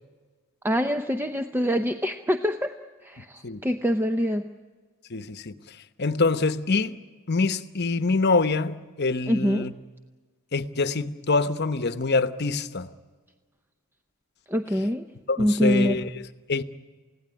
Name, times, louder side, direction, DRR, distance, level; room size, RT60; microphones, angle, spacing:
voice 1, 0.6-2.7 3.0-4.5 9.3-9.7 14.5-15.1 15.4-16.0, equal, 10° right, 0.7 m, -24 dB
voice 2, 3.2-3.6 5.1-7.0 7.3-9.7 10.5-12.9 15.3-16.6, left 3 dB, 50° left, 1.0 m, -25 dB
29.0 x 16.5 x 9.8 m
head